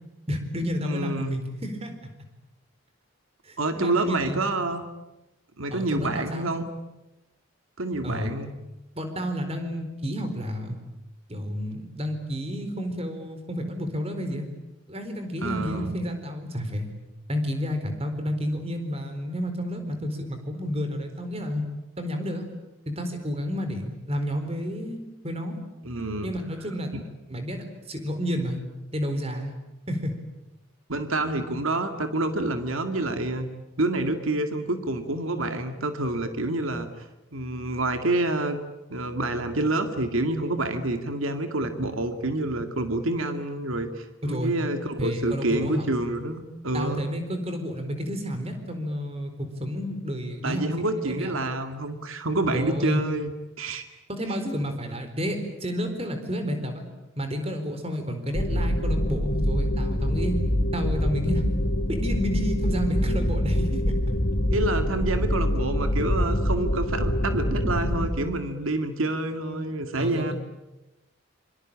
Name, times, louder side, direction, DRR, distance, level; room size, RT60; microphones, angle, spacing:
voice 1, 0.3-1.9 3.4-4.4 5.7-6.5 8.0-8.3 9.0-10.8 11.3-14.5 14.9-16.9 17.3-21.6 22.0-22.5 22.9-25.0 25.2-25.6 26.2-26.9 27.3-28.6 28.9-29.5 29.9-30.1 31.1-31.3 44.2-44.5 45.0-45.9 46.7-50.7 51.0-51.3 52.5-53.0 54.1-56.8 57.2-60.4 60.7-61.4 61.9-64.0 70.0-70.3, equal, 30° right, 7 dB, 4.3 m, -30 dB
voice 2, 0.8-1.4 3.6-4.9 5.6-6.7 7.8-8.5 15.4-16.0 25.8-26.3 26.9-27.0 30.9-33.5 33.8-37.1 37.3-38.6 38.9-47.0 50.4-53.3 53.6-53.8 64.5-70.3, right 2 dB, 80° right, 7 dB, 2.2 m, -28 dB
sound 1, 58.3-68.1, equal, 60° left, 3.5 m, -25 dB
27.0 x 25.0 x 8.8 m, 1.0 s
head